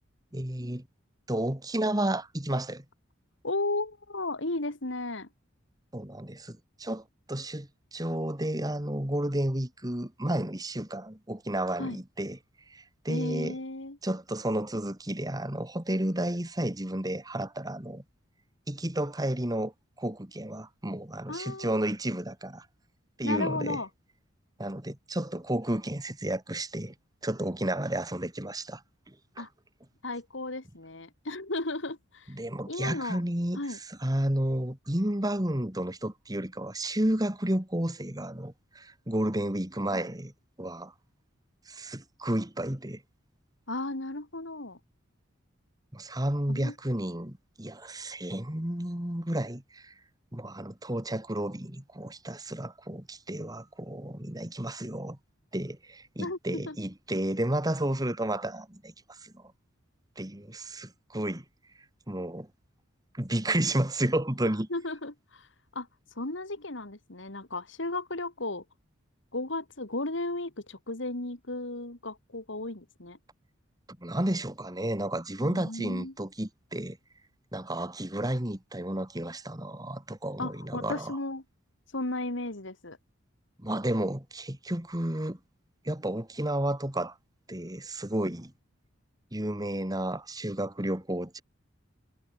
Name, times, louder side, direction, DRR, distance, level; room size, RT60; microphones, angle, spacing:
voice 1, 0.3-0.9 1.3-2.8 5.9-12.4 12.7-13.6 14.0-18.0 18.7-19.7 20.0-22.7 23.2-23.8 24.6-26.9 27.2-28.8 29.1-29.5 32.3-40.3 40.6-40.9 41.7-43.0 45.9-49.9 50.3-55.2 55.5-59.4 60.2-61.4 62.1-62.5 63.1-64.7 74.0-77.0 77.5-81.2 83.6-85.4 85.8-87.2 87.5-88.5 89.3-91.4, right 1 dB, 20° right, 2.3 m, -32 dB
voice 2, 3.4-5.3 11.8-12.0 13.1-14.0 21.3-21.8 23.2-23.9 29.4-29.5 30.0-32.3 32.7-33.2 33.6-33.8 39.9-40.1 43.7-44.8 46.5-46.7 56.2-56.8 64.7-65.5 65.7-65.9 66.2-68.6 69.3-73.2 75.4-76.1 80.4-81.4 81.9-83.0, left 2 dB, 65° left, 2.5 m, -34 dB
head